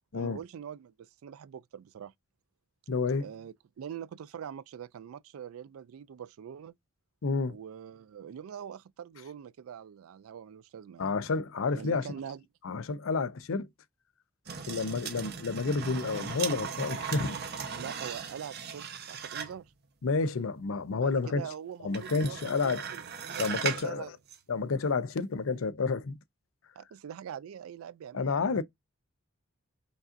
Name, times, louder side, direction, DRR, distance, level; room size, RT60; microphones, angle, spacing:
voice 1, 0.1-2.1 3.2-6.7 7.5-11.1 11.7-12.4 17.8-19.7 21.0-24.1 26.8-28.6, right 8 dB, 90° right, 0.3 m, -43 dB
voice 2, 2.9-3.3 7.2-7.6 11.0-12.1 12.6-13.7 14.7-17.4 20.0-21.5 21.8-22.9 23.4-24.1 24.5-26.2 28.1-28.6, left 4 dB, 70° left, 0.5 m, -30 dB
sound 1, 14.5-19.7 21.9-23.9 24.3-24.4, right 6 dB, 50° right, 0.8 m, -37 dB
5.3 x 2.5 x 2.4 m
head